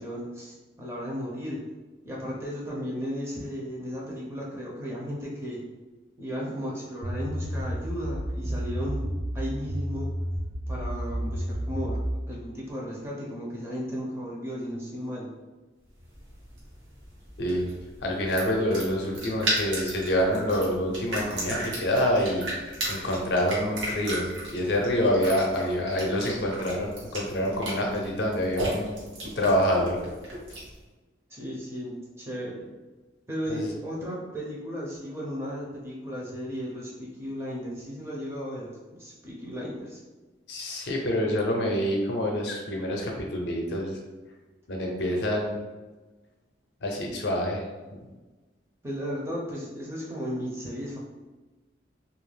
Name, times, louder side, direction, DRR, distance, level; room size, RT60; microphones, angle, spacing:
voice 1, 0.0-1.6 2.0-5.6 6.2-10.1 10.7-12.0 12.3-15.3 31.3-32.7 33.3-40.0 48.8-51.0, equal, 15° right, -4 dB, 0.5 m, -35 dB
sound 1, 7.0-12.2, equal, 65° right, 0.5 m, -31 dB
sound 2, 16.0-30.8, right 1 dB, 85° right, 1.0 m, -35 dB
voice 2, 17.4-17.7 18.0-22.5 22.9-24.3 24.5-29.0 29.4-30.0 33.5-33.7 40.5-44.0 44.7-45.6 46.8-47.6 47.9-48.0, equal, 65° left, 0 dB, 0.5 m, -26 dB
2.3 x 2.1 x 3.2 m, 1.2 s
head